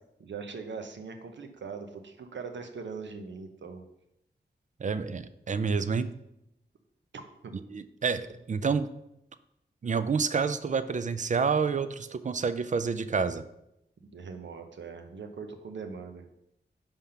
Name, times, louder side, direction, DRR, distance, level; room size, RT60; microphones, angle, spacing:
voice 1, 0.2-3.8 7.1-7.6 14.1-16.2, right 5 dB, 90° right, 6 dB, 0.7 m, -41 dB
voice 2, 4.8-6.1 7.7-8.9 9.8-13.4, right 5 dB, 45° right, 13 dB, 0.4 m, -28 dB
5.6 x 3.5 x 5.6 m, 0.82 s
wide cardioid pair, 90°, 18 cm